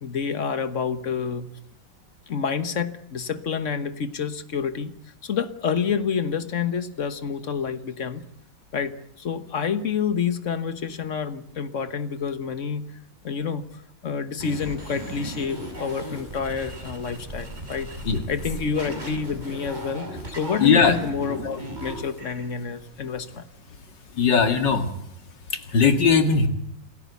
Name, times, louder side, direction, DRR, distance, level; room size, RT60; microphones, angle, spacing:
voice 1, 0.0-1.5 2.3-4.9 5.2-8.2 8.7-12.8 13.2-13.7 14.0-17.9 18.3-23.4, left 6 dB, 45° left, 12 dB, 1.5 m, -28 dB
sound 1, 14.4-22.5, right 1 dB, 25° right, 6.2 m, -36 dB
voice 2, 20.6-21.0 24.1-25.2 25.5-26.5, left 5 dB, 75° left, 8 dB, 2.6 m, -19 dB
27.5 x 14.0 x 8.3 m, 0.74 s
omnidirectional pair, 1.9 m